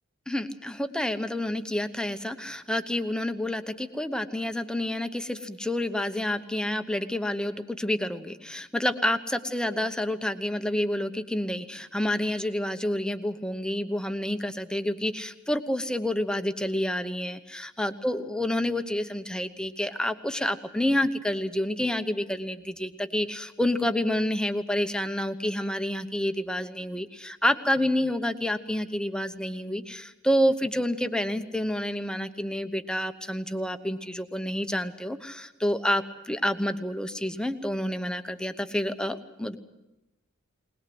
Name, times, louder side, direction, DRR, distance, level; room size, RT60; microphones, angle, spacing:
voice 1, 0.3-39.6, left 1 dB, 5° left, 9 dB, 1.0 m, -29 dB
20.5 x 20.5 x 7.9 m, 0.97 s
head